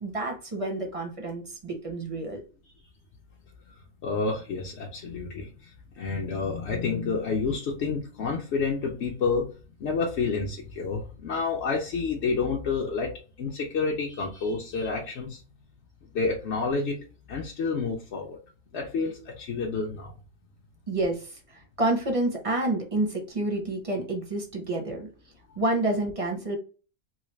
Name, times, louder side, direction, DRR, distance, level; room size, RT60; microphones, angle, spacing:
voice 1, 0.0-2.4 20.9-25.1 25.6-26.6, right 2 dB, 35° right, 2 dB, 0.6 m, -29 dB
voice 2, 4.0-5.7 6.0-9.5 9.8-13.1 13.4-15.4 16.1-17.0 17.3-18.4 18.7-20.1, left 4 dB, 55° left, -2 dB, 0.9 m, -29 dB
3.1 x 2.5 x 3.1 m, 0.35 s
omnidirectional pair, 1.6 m